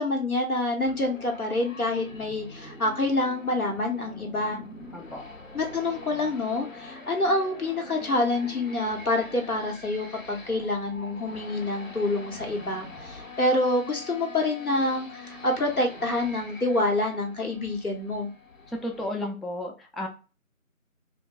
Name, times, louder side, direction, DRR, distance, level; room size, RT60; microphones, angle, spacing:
voice 1, 0.0-4.6 5.5-18.3, left 2 dB, 85° left, 2 dB, 1.0 m, -27 dB
sound 1, 0.8-19.2, left 2 dB, 65° left, 0.7 m, -44 dB
voice 2, 4.9-5.2 18.7-20.1, left 1 dB, ahead, 2 dB, 0.3 m, -33 dB
2.6 x 2.2 x 2.6 m, 0.34 s
figure-of-eight pair, 170°, 42 cm